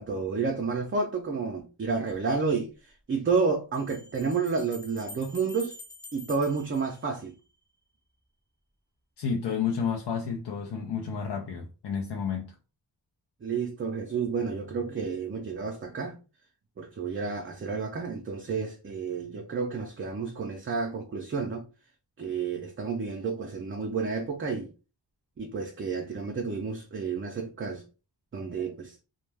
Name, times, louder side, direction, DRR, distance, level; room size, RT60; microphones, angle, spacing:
voice 1, 0.0-2.7 3.1-5.7 6.1-7.3 13.4-16.2 16.8-21.6 22.2-24.7 25.4-27.8 28.3-29.0, right 5 dB, 30° right, 0.4 m, -30 dB
sound 1, 3.7-7.7, left 2 dB, 20° left, 0.7 m, -47 dB
voice 2, 9.2-12.5, left 6 dB, 75° left, 0.6 m, -31 dB
2.2 x 2.1 x 3.3 m
wide cardioid pair, 65°, 41 cm